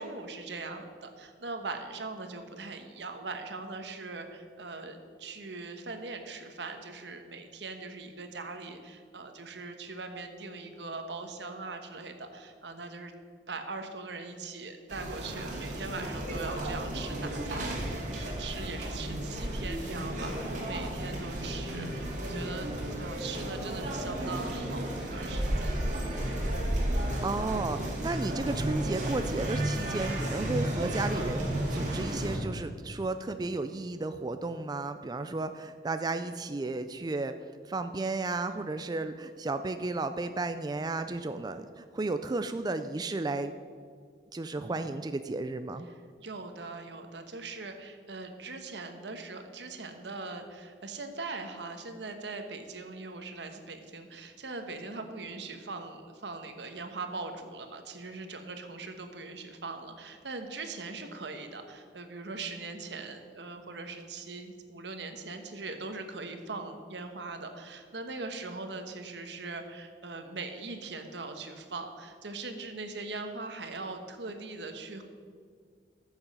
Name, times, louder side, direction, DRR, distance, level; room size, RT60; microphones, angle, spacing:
voice 1, 0.0-13.1 13.5-22.7 23.0-25.9 44.6-45.0 45.9-75.0, right 3 dB, 80° right, 6 dB, 1.2 m, -41 dB
sound 1, 14.9-32.4, right 1 dB, 45° right, 2.4 m, -33 dB
voice 2, 27.2-37.3 37.7-43.5 44.3-45.9, right 3 dB, 25° right, 9 dB, 0.4 m, -33 dB
14.0 x 7.2 x 5.5 m, 2.1 s
head